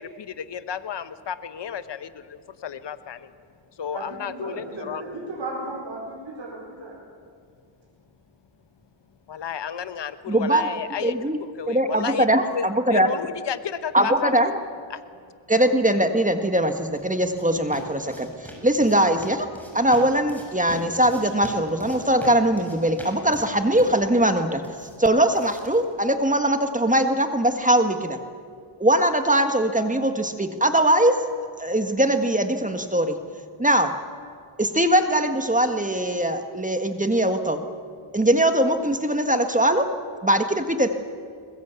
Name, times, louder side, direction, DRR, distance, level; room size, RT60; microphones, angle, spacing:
voice 1, 0.0-3.3 3.8-5.1 9.3-14.5 14.9-15.0, left 7 dB, 60° left, 12 dB, 1.2 m, -32 dB
voice 2, 3.9-6.9, right 2 dB, 70° right, -2 dB, 4.9 m, -35 dB
voice 3, 10.3-10.7 11.0-11.4 11.7-13.1 13.9-14.5 15.5-19.5 19.7-24.6 25.0-28.2 28.8-31.2 31.6-33.2 33.6-33.9 34.6-37.6 38.1-39.9 40.2-40.9, right 1 dB, 15° right, 7 dB, 1.7 m, -21 dB
sound 1, 16.6-26.6, equal, 5° left, 6.9 m, -43 dB
21.0 x 21.0 x 8.3 m, 2.2 s
cardioid pair, 70°, 47 cm